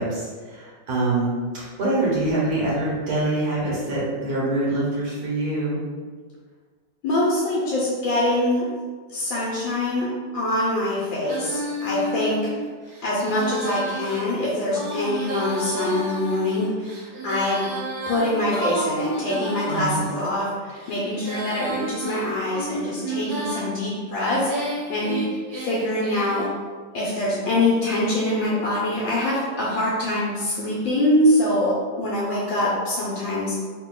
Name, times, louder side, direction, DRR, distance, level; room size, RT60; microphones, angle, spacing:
voice 1, 0.0-5.8 19.7-20.0, right 2 dB, 55° right, -6 dB, 1.4 m, -25 dB
voice 2, 7.0-8.7 9.1-12.5 13.0-16.9 17.2-17.7 18.1-25.2 25.5-26.5 26.9-33.6, left 1 dB, 80° left, -6 dB, 1.5 m, -24 dB
Female singing, 11.2-20.1 20.7-23.7 24.2-26.5, right 1 dB, 80° right, 0.5 m, -32 dB
3.3 x 2.8 x 3.8 m, 1.5 s
omnidirectional pair, 2.1 m